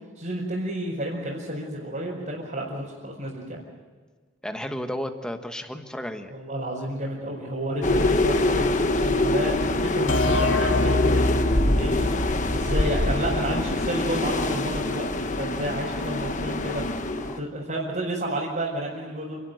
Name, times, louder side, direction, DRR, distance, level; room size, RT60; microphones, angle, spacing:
voice 1, 0.1-3.6 6.3-11.4 11.8-16.8 17.2-19.4, right 1 dB, 45° right, -5 dB, 4.9 m, -31 dB
voice 2, 4.4-6.3 17.3-17.4, equal, 5° left, 6 dB, 1.3 m, -33 dB
sound 1, 7.8-17.4, left 2 dB, 40° left, 1.2 m, -25 dB
sound 2, 10.1-13.7, left 2 dB, 80° left, 2.2 m, -26 dB
28.5 x 12.5 x 9.3 m, 1.5 s
head